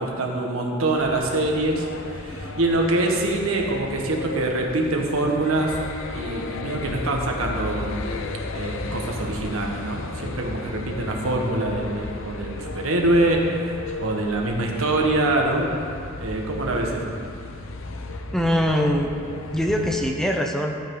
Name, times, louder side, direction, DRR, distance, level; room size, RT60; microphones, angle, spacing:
voice 1, 0.0-5.8 6.1-7.9 8.5-15.7 16.2-17.1, right 2 dB, 80° right, 0 dB, 1.6 m, -24 dB
sound 1, 1.0-20.1, left 2 dB, 65° left, 0.8 m, -34 dB
voice 2, 18.3-19.1 19.5-20.8, equal, ahead, 2 dB, 0.7 m, -22 dB
15.0 x 8.8 x 3.9 m, 2.4 s
head